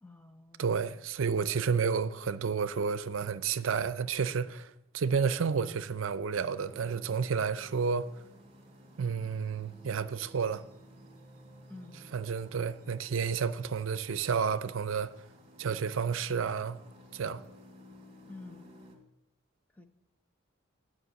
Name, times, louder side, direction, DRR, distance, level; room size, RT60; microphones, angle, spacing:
voice 1, 0.0-0.9 11.7-12.1 18.3-18.7 19.7-19.9, left 2 dB, 10° left, 0.6 m, -49 dB
voice 2, 0.6-8.1 9.0-10.6 12.1-15.1 15.6-16.8 17.1-17.4, right 6 dB, 70° right, 0.5 m, -31 dB
sound 1, 6.3-19.0, equal, 30° right, 2.1 m, -55 dB
9.7 x 5.4 x 7.5 m
head